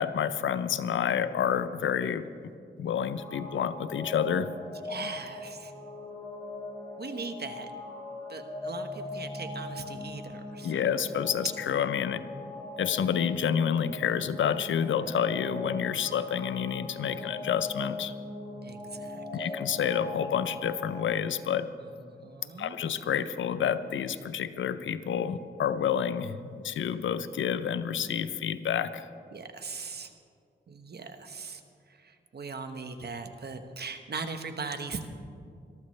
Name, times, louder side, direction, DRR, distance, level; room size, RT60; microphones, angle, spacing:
voice 1, 0.0-2.2 2.8-4.5 10.6-12.3 12.8-18.1 19.3-21.7 22.6-29.1, left 8 dB, 85° left, 13 dB, 0.6 m, -29 dB
sound 1, 3.1-21.0, left 2 dB, 15° left, 3.9 m, -40 dB
voice 2, 4.8-5.7 7.0-7.7 8.3-10.8 16.9-17.5 18.6-19.6 22.2-22.7 29.3-30.1 30.7-31.6 32.0-35.1, right 4 dB, 55° right, 7 dB, 1.3 m, -40 dB
21.5 x 13.0 x 3.3 m, 2.3 s
cardioid pair, 55°, 20 cm